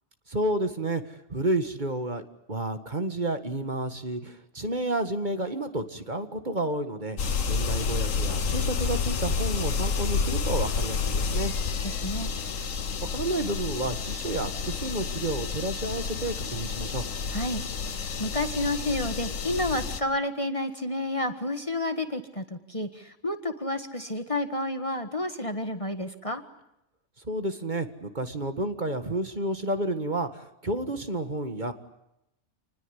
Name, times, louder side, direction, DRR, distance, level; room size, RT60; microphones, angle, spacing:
voice 1, 0.3-2.2 2.5-7.2 7.5-11.5 13.1-17.1 27.2-31.7, right 1 dB, 35° right, 8 dB, 1.9 m, -30 dB
sound 1, 7.2-20.0, left 5 dB, 90° left, 1.6 m, -30 dB
voice 2, 11.8-12.3 17.3-17.6 17.9-26.4, left 1 dB, 25° left, 8 dB, 1.7 m, -30 dB
28.0 x 20.5 x 9.9 m, 0.84 s
omnidirectional pair, 1.3 m